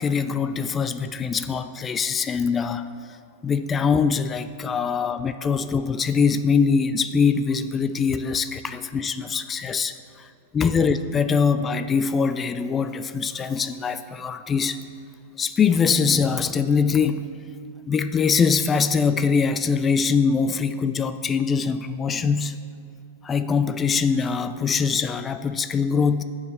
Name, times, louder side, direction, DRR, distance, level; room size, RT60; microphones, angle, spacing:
voice 1, 0.0-2.9 3.4-14.8 15.4-17.3 17.9-22.5 23.2-26.2, left 5 dB, 20° left, 11 dB, 0.3 m, -23 dB
6.8 x 4.8 x 6.1 m, 2.4 s
hypercardioid pair, 105°, 0 cm